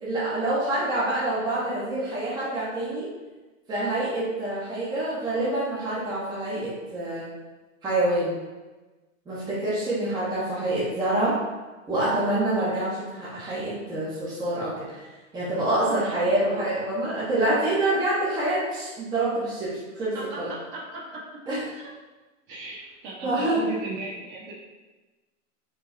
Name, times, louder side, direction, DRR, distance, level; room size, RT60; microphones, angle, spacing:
voice 1, 0.0-3.1 3.7-7.3 7.8-8.3 9.3-11.4 11.9-15.1 15.3-20.5 21.5-21.6 23.2-23.6, right 1 dB, 10° right, -9 dB, 0.9 m, -26 dB
voice 2, 20.1-21.2 21.7-21.9 22.5-24.5, right 3 dB, 40° right, -4 dB, 1.3 m, -36 dB
4.6 x 2.3 x 4.5 m, 1.2 s
hypercardioid pair, 140°, 40 cm